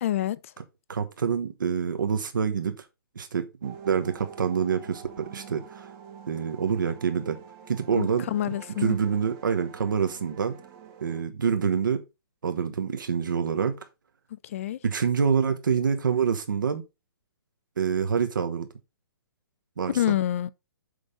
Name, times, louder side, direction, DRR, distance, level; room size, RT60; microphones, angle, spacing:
voice 1, 0.0-0.4 8.0-8.9 14.4-14.8 19.9-20.5, left 12 dB, 35° left, 0.5 m, -27 dB
voice 2, 0.9-2.8 3.1-5.9 6.3-7.4 7.7-8.3 8.8-10.5 11.0-12.0 12.4-13.9 14.8-16.8 17.8-18.7 19.8-19.9, right 6 dB, 55° right, 1.1 m, -26 dB
sound 1, 3.6-11.2, right 8 dB, 20° right, 1.0 m, -46 dB
6.6 x 5.4 x 5.0 m
figure-of-eight pair, 125°, 12 cm